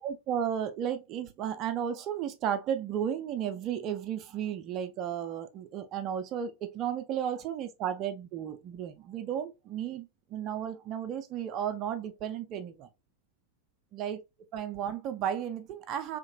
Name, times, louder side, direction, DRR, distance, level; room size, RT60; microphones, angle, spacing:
voice 1, 0.0-12.9 13.9-14.2 14.5-16.2, right 9 dB, 35° right, 0.5 m, -34 dB
2.9 x 2.9 x 2.6 m
figure-of-eight pair, 90°, 0 cm